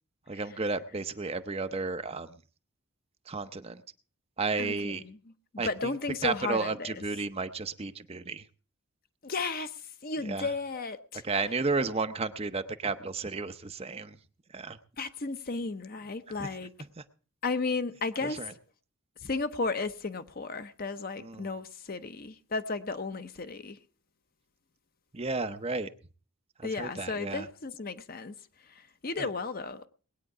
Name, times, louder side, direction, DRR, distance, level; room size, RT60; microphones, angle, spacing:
voice 1, 0.3-2.3 3.3-3.8 4.4-5.0 5.6-5.9 6.2-8.4 10.2-10.5 11.2-14.2 14.5-14.8 16.4-16.5 18.2-18.5 21.2-21.5 25.1-25.9 26.6-27.5 29.2-29.3, right 3 dB, 25° right, 0.7 m, -32 dB
voice 2, 4.6-5.2 5.6-6.9 9.2-11.2 15.0-16.7 17.4-18.4 19.2-23.8 26.6-28.3 28.7-29.9, left 3 dB, 40° left, 0.7 m, -34 dB
20.0 x 9.1 x 4.8 m
head